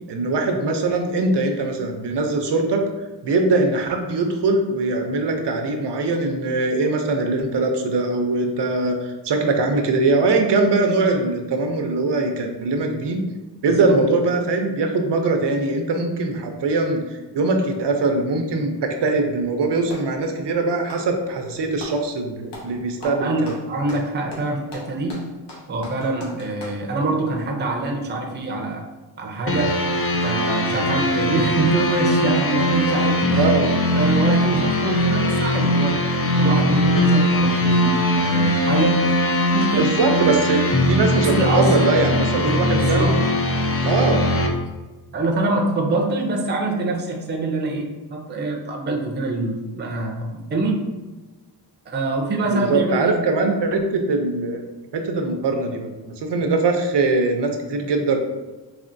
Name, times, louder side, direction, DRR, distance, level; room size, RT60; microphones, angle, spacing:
voice 1, 0.1-2.8 3.2-13.2 13.6-17.0 17.3-23.5 33.3-33.7 39.8-40.6 40.9-43.1 43.8-44.2 52.4-54.6 54.9-58.2, right 3 dB, 85° right, 4 dB, 0.6 m, -21 dB
Clapping, 19.3-20.2 20.8-22.0 22.5-22.7 23.0-26.8, left 1 dB, 90° left, 1.0 m, -39 dB
voice 2, 23.0-25.2 25.7-28.8 29.2-29.8 30.2-33.5 33.9-36.0 36.4-39.0 39.5-40.0 41.2-41.9 42.4-43.1 45.1-50.8 51.9-53.2, right 2 dB, 25° right, 1 dB, 0.5 m, -25 dB
sound 1, 29.5-44.5, equal, 35° left, 0.4 m, -20 dB
4.2 x 2.9 x 2.5 m, 1.2 s
wide cardioid pair, 155°, 41 cm